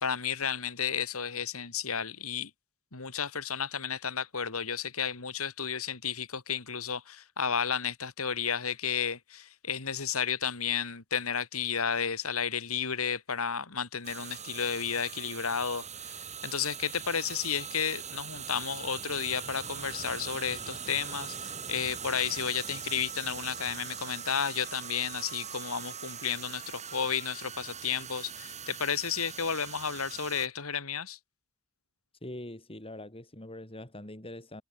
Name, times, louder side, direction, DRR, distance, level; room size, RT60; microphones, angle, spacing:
voice 1, 0.0-2.5 2.9-31.2, left 7 dB, 80° left, 2.4 m, -32 dB
sound 1, 14.0-30.5, right 7 dB, 35° right, 7.1 m, -41 dB
voice 2, 32.2-34.6, left 1 dB, 25° left, 4.4 m, -43 dB
head